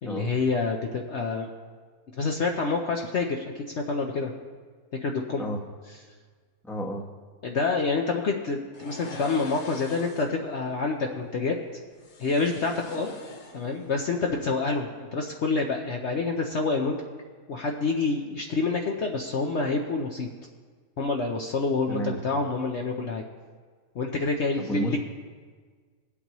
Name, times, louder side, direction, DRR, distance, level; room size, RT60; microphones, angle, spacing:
voice 1, 0.0-1.5 2.2-3.4 3.8-4.3 5.0-5.4 7.4-11.6 12.2-13.1 13.5-17.0 17.5-20.3 21.0-23.2 23.9-25.0, left 3 dB, 55° left, 1 dB, 0.9 m, -27 dB
voice 2, 6.7-7.0 21.9-22.2 24.6-25.0, right 1 dB, ahead, 0 dB, 0.9 m, -31 dB
sound 1, 8.7-10.4 12.0-13.9 14.2-14.4, left 4 dB, 80° left, 1.6 m, -42 dB
20.5 x 8.2 x 3.0 m, 1.5 s
omnidirectional pair, 1.7 m